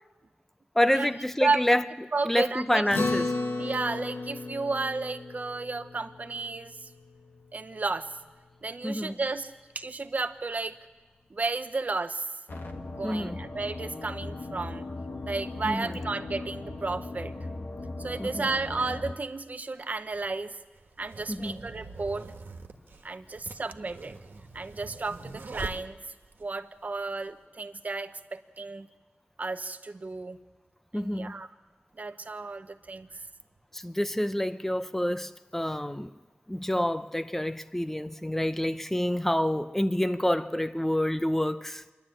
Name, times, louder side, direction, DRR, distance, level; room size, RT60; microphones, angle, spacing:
voice 1, 0.8-3.3 8.8-9.3 13.0-13.4 15.6-16.0 18.2-18.5 21.3-21.7 30.9-31.3 33.7-36.1 36.5-41.8, left 1 dB, 10° left, 0.7 m, -28 dB
voice 2, 2.1-2.8 3.6-6.9 7.5-8.1 8.6-10.8 11.3-12.3 12.7-14.9 15.2-17.3 18.0-20.6 21.0-22.2 23.0-24.1 24.5-26.0 26.4-28.9 29.4-30.4 30.9-31.5 32.0-33.1, right 3 dB, 45° right, 0.9 m, -33 dB
Acoustic guitar, 2.9-7.6, left 3 dB, 85° left, 1.6 m, -34 dB
sound 1, 12.5-19.1, left 2 dB, 65° left, 1.7 m, -38 dB
sound 2, 20.0-26.5, right 3 dB, 75° right, 1.6 m, -43 dB
27.0 x 11.5 x 8.8 m
wide cardioid pair, 115°, 4 cm